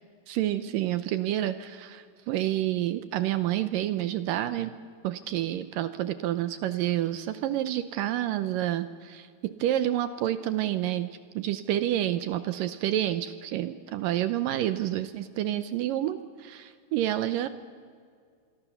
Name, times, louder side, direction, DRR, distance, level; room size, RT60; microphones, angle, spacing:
voice 1, 0.3-4.7 5.0-11.1 11.4-17.5, right 13 dB, 75° right, 12 dB, 2.2 m, -29 dB
27.0 x 23.0 x 7.0 m, 2.1 s
omnidirectional pair, 4.4 m